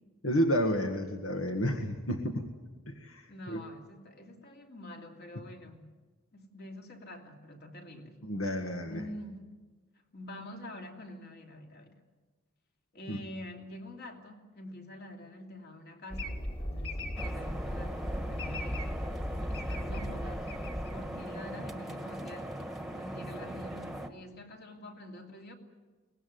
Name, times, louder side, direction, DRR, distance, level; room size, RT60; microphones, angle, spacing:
voice 1, 0.2-2.4 2.9-3.6 8.2-9.0 13.1-13.2, equal, 75° left, 4 dB, 1.8 m, -31 dB
voice 2, 3.3-5.9 6.3-8.2 8.9-9.5 10.1-12.0 12.9-19.1 19.5-20.6 20.9-22.5 23.0-25.6, left 1 dB, 50° left, 3 dB, 2.8 m, -46 dB
sound 1, 16.1-21.5, equal, 25° left, 2.5 m, -37 dB
sound 2, 17.2-24.1, equal, ahead, 1.4 m, -39 dB
23.0 x 19.0 x 9.5 m, 1.3 s
head